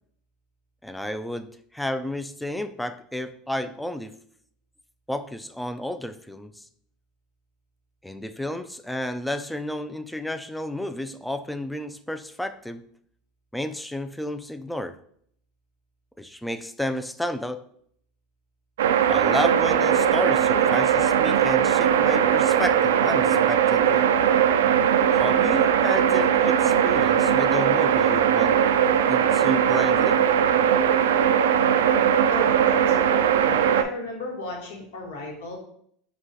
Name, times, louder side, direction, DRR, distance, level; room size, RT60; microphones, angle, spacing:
voice 1, 0.8-4.2 5.1-6.6 8.0-12.8 13.5-15.0 16.2-17.7 19.1-24.1 25.1-28.6 29.1-30.2, left 1 dB, 5° left, 0.3 m, -31 dB
sound 1, 18.8-33.8, right 8 dB, 85° right, 0.3 m, -20 dB
voice 2, 32.3-35.6, left 3 dB, 80° left, 1.3 m, -35 dB
4.8 x 2.3 x 4.0 m
supercardioid pair, 105°, 0 cm